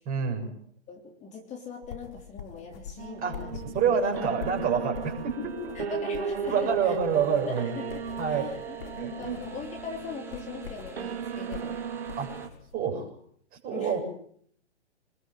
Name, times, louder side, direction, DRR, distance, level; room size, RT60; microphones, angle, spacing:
voice 1, 0.1-0.5 3.2-5.8 6.5-7.8 8.2-8.5 9.0-9.4 12.2-12.3 12.7-13.2 13.5-14.0, right 6 dB, 25° right, 4 dB, 6.9 m, -28 dB
voice 2, 0.9-3.5 4.0-4.2 5.9-6.9 7.5-8.0 8.3-8.9 9.2-11.7 13.7-14.0, left 4 dB, 20° left, 3 dB, 3.7 m, -40 dB
sound 1, 1.8-12.8, left 7 dB, 55° left, 4.2 m, -45 dB
sound 2, 3.0-12.5, right 7 dB, 65° right, 1.6 m, -36 dB
sound 3, 5.3-12.5, right 3 dB, 5° right, 3.4 m, -49 dB
27.5 x 21.0 x 7.9 m, 0.64 s
hypercardioid pair, 125°, 34 cm